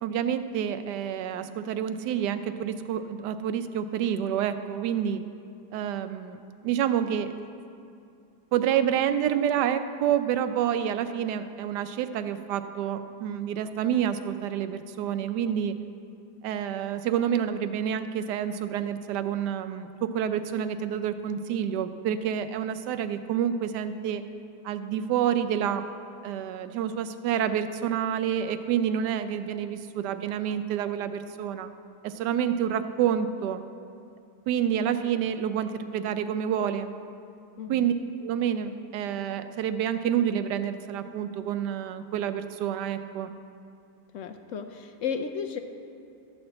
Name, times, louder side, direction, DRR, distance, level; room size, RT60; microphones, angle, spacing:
voice 1, 0.0-5.2 5.7-7.3 8.5-15.8 16.4-24.2 24.6-25.9 26.2-31.7 32.0-33.6 34.5-36.9 37.7-37.9 38.2-43.3, right 9 dB, 90° right, 11 dB, 1.2 m, -28 dB
voice 2, 37.6-37.9 44.1-45.6, left 7 dB, 65° left, 7 dB, 0.8 m, -33 dB
13.0 x 4.3 x 7.6 m, 2.5 s
omnidirectional pair, 1.8 m